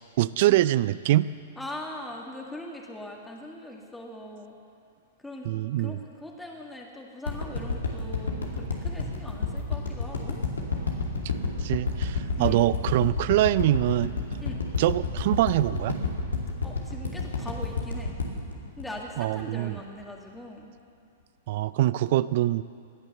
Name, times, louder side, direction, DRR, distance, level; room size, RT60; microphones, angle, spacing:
voice 1, 0.2-1.3 5.5-6.0 11.6-14.1 14.8-16.0 19.2-19.7 21.5-22.6, right 15 dB, 60° right, 17 dB, 0.4 m, -24 dB
voice 2, 1.6-4.5 5.2-5.5 5.8-10.4 12.4-12.7 14.4-14.6 16.6-18.2 18.8-20.7, left 1 dB, 5° left, -1 dB, 1.9 m, -41 dB
sound 1, 7.3-19.6 20.0-20.1, left 4 dB, 90° left, 2.4 m, -30 dB
18.5 x 10.5 x 6.8 m, 2.4 s
hypercardioid pair, 115°, 0 cm